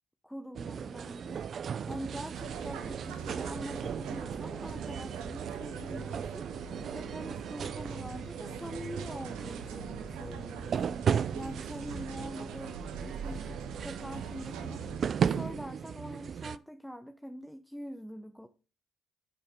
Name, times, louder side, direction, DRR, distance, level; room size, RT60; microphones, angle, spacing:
voice 1, 0.2-1.4 1.9-6.6 6.9-11.0 11.3-14.9 15.3-18.5, equal, ahead, 0.8 m, -44 dB
sound 1, 0.5-16.6, right 7 dB, 55° right, 0.4 m, -36 dB
sound 2, 2.3-15.0, right 6 dB, 90° right, 1.3 m, -43 dB
9.9 x 6.9 x 3.6 m
supercardioid pair, 60°, 0 cm